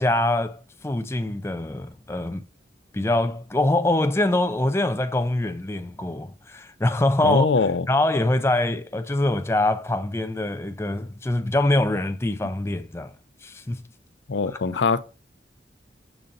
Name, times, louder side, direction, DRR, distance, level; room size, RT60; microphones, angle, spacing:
voice 1, 0.0-2.4 2.9-13.1 13.4-13.8 14.5-14.6, left 1 dB, 15° left, 0.4 m, -24 dB
voice 2, 7.2-7.9 14.3-15.0, left 4 dB, 80° left, 0.5 m, -22 dB
6.9 x 2.6 x 5.2 m
head